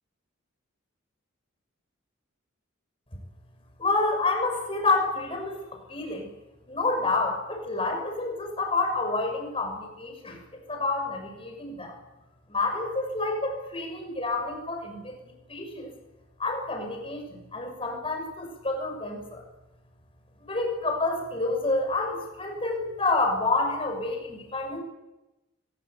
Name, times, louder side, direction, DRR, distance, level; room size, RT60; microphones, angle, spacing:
voice 1, 3.8-6.3 6.7-12.0 12.5-15.9 16.4-19.4 20.5-24.8, left 3 dB, 25° left, 3 dB, 6.3 m, -29 dB
22.5 x 20.0 x 8.3 m, 1.0 s
head